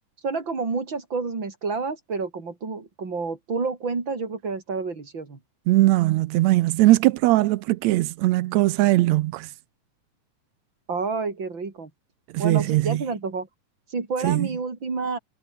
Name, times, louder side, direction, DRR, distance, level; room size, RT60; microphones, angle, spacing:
voice 1, 0.2-5.4 10.9-11.9 12.4-13.5 13.9-15.2, right 4 dB, 35° right, 4.6 m, -29 dB
voice 2, 5.7-9.5 12.3-13.0 14.2-14.5, right 18 dB, 80° right, 1.6 m, -20 dB
omnidirectional pair, 3.8 m